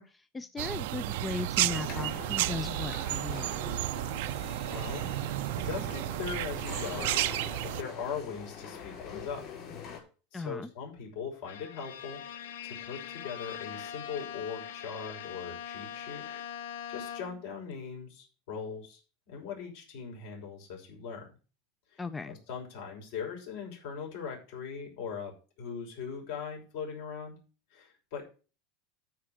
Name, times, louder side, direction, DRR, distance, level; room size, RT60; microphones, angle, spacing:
voice 1, 0.0-3.6 10.3-10.7 22.0-22.4, left 4 dB, 10° left, 13 dB, 0.4 m, -37 dB
sound 1, 0.6-7.8, right 17 dB, 65° right, 0.5 m, -32 dB
sound 2, 1.7-10.0, left 7 dB, 35° left, 5.1 m, -44 dB
voice 2, 4.7-7.1 7.3-9.5 10.3-16.2 16.9-19.0 19.3-21.3 21.9-22.0 22.3-27.4 27.7-28.2, left 6 dB, 65° left, 0 dB, 5.9 m, -40 dB
Bowed string instrument, 11.5-17.5, left 9 dB, 90° left, 0.9 m, -42 dB
12.5 x 5.1 x 6.4 m, 0.35 s
supercardioid pair, 160°, 0 cm